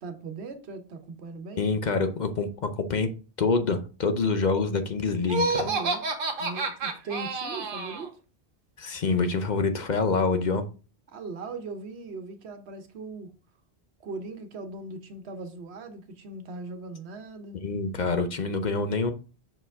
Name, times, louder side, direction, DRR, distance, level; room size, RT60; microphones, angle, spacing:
voice 1, 0.0-1.7 5.5-6.0 6.4-8.2 11.1-13.3 14.0-17.6, right 3 dB, 85° right, 1.1 m, -39 dB
voice 2, 1.6-3.1 3.4-5.7 8.8-10.6 17.6-19.1, left 4 dB, 50° left, 0.7 m, -26 dB
Laughter, 5.3-8.1, right 3 dB, 60° right, 1.0 m, -29 dB
5.9 x 4.6 x 3.5 m
omnidirectional pair, 1.1 m